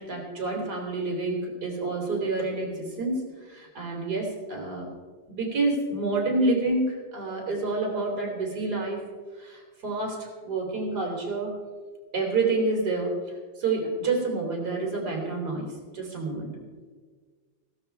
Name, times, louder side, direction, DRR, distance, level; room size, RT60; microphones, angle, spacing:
voice 1, 0.0-4.9 5.3-9.0 9.3-11.5 12.1-16.5, right 3 dB, 55° right, 0 dB, 3.9 m, -28 dB
16.5 x 12.5 x 4.6 m, 1.5 s
omnidirectional pair, 2.1 m